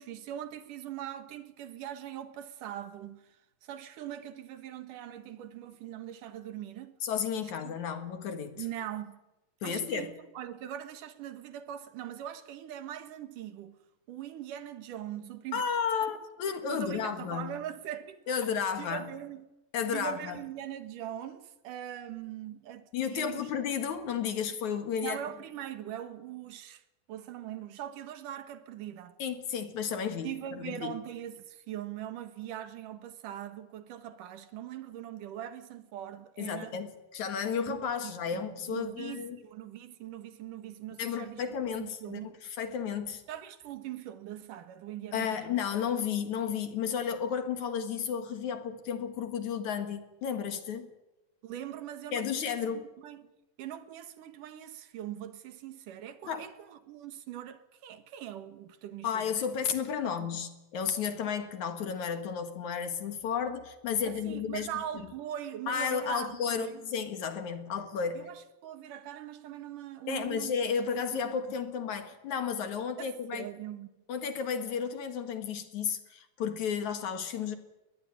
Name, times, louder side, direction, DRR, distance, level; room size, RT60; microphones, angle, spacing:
voice 1, 0.0-6.9 7.6-7.8 8.6-9.2 9.6-13.8 14.1-15.6 16.0-16.1 16.7-19.4 19.9-23.5 25.0-26.8 27.1-29.1 30.2-36.8 37.7-41.4 41.8-42.3 43.3-45.6 51.4-53.3 53.6-59.3 60.0-60.4 64.1-66.8 68.1-70.5 71.1-71.4 73.0-73.9, right 11 dB, 65° right, 2.8 m, -41 dB
voice 2, 7.0-8.6 9.6-10.1 15.5-17.5 18.3-19.0 19.7-20.4 22.9-25.2 29.2-30.9 36.4-39.4 41.0-42.2 42.6-43.2 45.1-50.9 52.1-52.8 56.3-56.5 59.0-64.7 65.7-68.3 70.1-73.5 74.1-77.6, left 7 dB, 60° left, 2.8 m, -33 dB
21.5 x 20.0 x 9.9 m
omnidirectional pair, 4.3 m